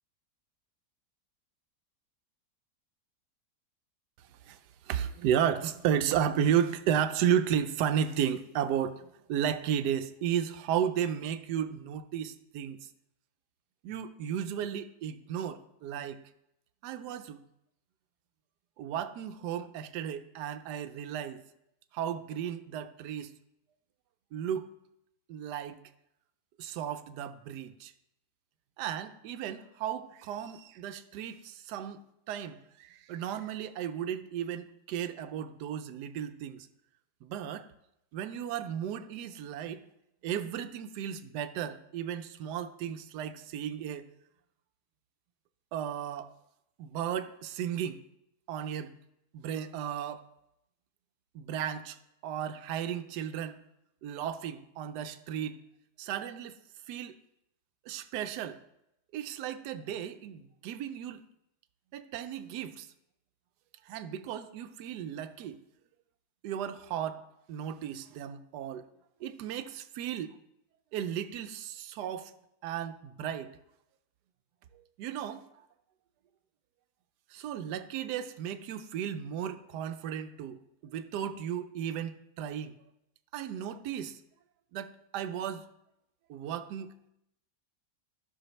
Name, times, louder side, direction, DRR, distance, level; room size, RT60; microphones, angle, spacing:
voice 1, 4.8-12.8 13.8-16.2 16.8-17.4 18.8-21.4 21.9-23.3 24.3-24.7 25.3-25.8 26.6-27.9 28.8-32.0 32.3-36.7 37.2-37.7 38.1-39.8 40.2-44.1 45.7-46.3 46.8-48.0 48.5-48.9 49.3-50.2 51.3-52.0 52.2-53.6 54.0-55.6 56.0-56.6 56.9-57.1 57.9-58.6 59.1-61.2 61.9-62.9 63.9-65.6 66.4-67.2 67.5-68.9 69.2-70.3 70.9-72.3 72.6-73.5 75.0-75.5 77.3-82.8 83.3-84.2 84.7-85.7 86.3-86.9, right 9 dB, 80° right, 1.1 m, -34 dB
13.0 x 5.7 x 3.0 m
omnidirectional pair, 1.8 m